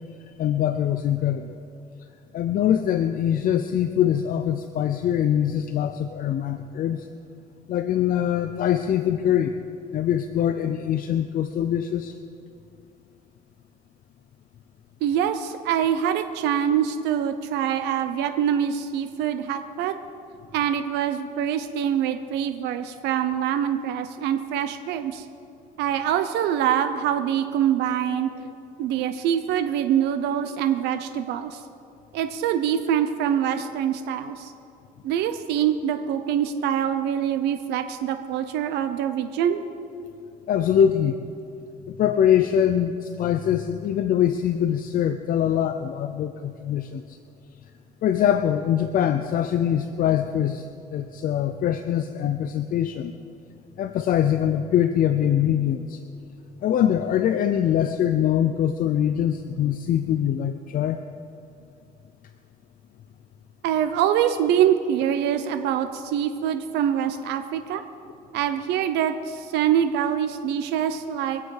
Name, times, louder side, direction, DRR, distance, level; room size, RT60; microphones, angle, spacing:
voice 1, 0.4-1.5 2.3-7.0 7.7-9.5 9.9-12.1 28.4-28.5 40.5-41.2 41.9-47.0 48.0-50.6 50.9-53.1 53.8-56.0 56.6-61.0, left 10 dB, 55° left, 8 dB, 0.6 m, -23 dB
voice 2, 15.0-19.9 20.5-25.2 25.8-28.3 28.8-31.6 32.1-34.5 35.0-39.6 63.6-67.8 68.3-71.4, right 9 dB, 85° right, 8 dB, 0.7 m, -24 dB
24.0 x 8.4 x 4.8 m, 2.7 s
cardioid pair, 110°, 17 cm